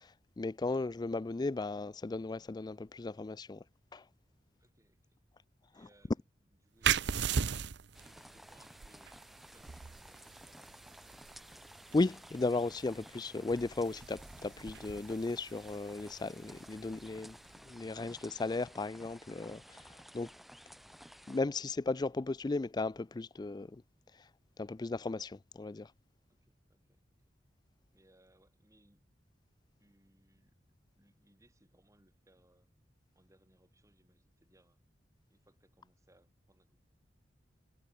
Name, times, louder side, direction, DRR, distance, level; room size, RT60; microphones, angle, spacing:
voice 1, 0.0-3.6 3.9-4.0 11.9-17.4 17.7-20.3 21.3-23.7 24.1-24.3 24.6-25.9, left 3 dB, 20° left, 0.4 m, -35 dB
voice 2, 4.6-5.2 5.7-7.6 7.9-10.9 26.3-27.0 27.9-29.0 29.8-32.7 33.1-34.8 35.3-36.8, right 1 dB, 15° right, 6.7 m, -68 dB
sound 1, 6.8-18.1, right 7 dB, 65° right, 0.7 m, -39 dB
sound 2, 7.9-21.4, equal, ahead, 2.6 m, -54 dB
head